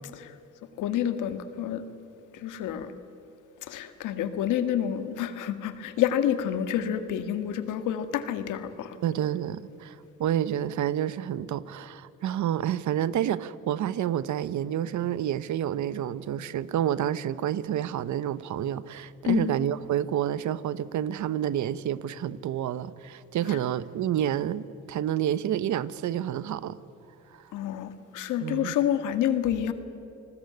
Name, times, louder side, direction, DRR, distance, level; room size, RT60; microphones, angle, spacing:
voice 1, 0.8-1.8 2.4-2.9 3.7-9.0 19.2-19.5 27.5-29.7, left 10 dB, 90° left, 10 dB, 1.8 m, -28 dB
voice 2, 9.0-26.8 27.3-27.4 28.4-28.8, right 10 dB, 70° right, 16 dB, 1.0 m, -29 dB
29.0 x 20.0 x 9.6 m, 2.8 s
cardioid pair, 90°, 30 cm